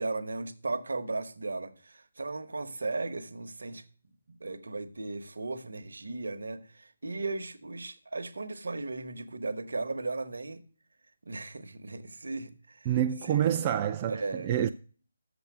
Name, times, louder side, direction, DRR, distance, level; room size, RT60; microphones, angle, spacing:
voice 1, 0.0-3.8 4.4-10.6 11.2-12.9 13.4-13.7 14.1-14.5, right 3 dB, 70° right, 1.1 m, -36 dB
voice 2, 12.9-14.7, right 10 dB, 25° right, 0.4 m, -27 dB
7.0 x 6.8 x 6.2 m
figure-of-eight pair, 155°, 0 cm